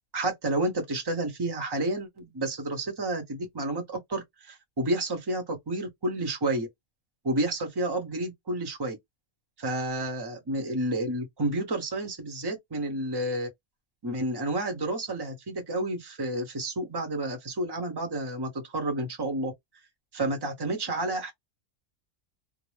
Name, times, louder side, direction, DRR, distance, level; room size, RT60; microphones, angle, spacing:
voice 1, 0.1-6.7 7.2-9.0 9.6-13.5 14.0-19.5 20.1-21.3, right 1 dB, 25° right, 0.6 m, -30 dB
2.5 x 2.0 x 3.1 m
omnidirectional pair, 1.5 m